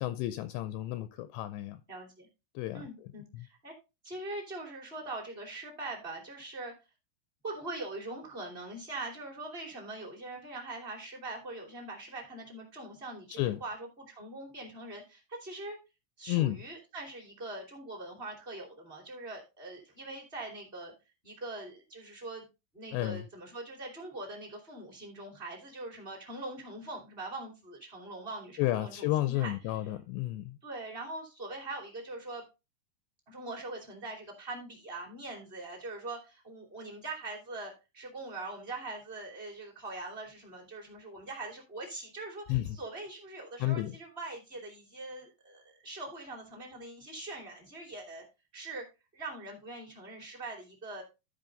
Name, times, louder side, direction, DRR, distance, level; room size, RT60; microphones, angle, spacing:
voice 1, 0.0-1.8 2.6-2.9 3.3-3.5 13.3-13.6 16.3-16.6 22.9-23.2 28.6-30.6 42.5-42.6 43.6-44.0, left 15 dB, 85° left, 2.5 m, -31 dB
voice 2, 1.9-2.3 2.7-3.7 4.0-6.7 7.4-15.8 16.2-20.9 21.2-22.4 22.7-29.8 30.6-32.4 33.3-48.2 48.5-48.8 49.1-51.0, right 2 dB, 20° right, 1.7 m, -42 dB
13.5 x 5.3 x 3.9 m
omnidirectional pair, 5.7 m